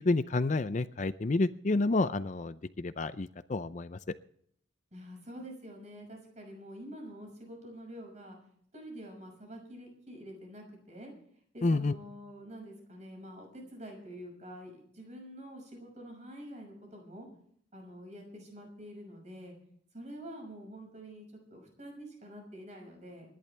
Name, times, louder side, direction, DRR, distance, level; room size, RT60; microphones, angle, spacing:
voice 1, 0.0-4.0 11.6-12.0, left 2 dB, 40° left, 13 dB, 0.5 m, -29 dB
voice 2, 4.9-8.4 8.7-11.1 11.5-17.3 17.7-19.5 19.9-23.3, equal, 35° right, 2 dB, 6.1 m, -47 dB
26.0 x 11.0 x 3.4 m, 0.64 s
head